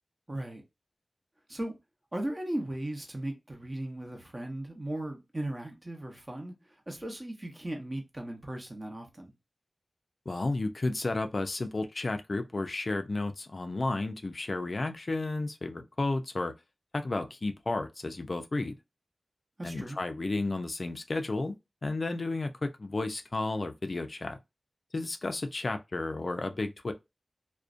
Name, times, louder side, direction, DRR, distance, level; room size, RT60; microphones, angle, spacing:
voice 1, 0.3-0.6 1.5-1.7 2.1-6.5 6.9-9.3 19.6-20.0, right 1 dB, 30° right, 0.7 m, -37 dB
voice 2, 10.3-16.5 16.9-18.7 19.6-21.5 21.8-24.4 24.9-26.9, left 2 dB, 55° left, 0.3 m, -32 dB
2.5 x 2.1 x 2.4 m
wide cardioid pair, 85°, 0 cm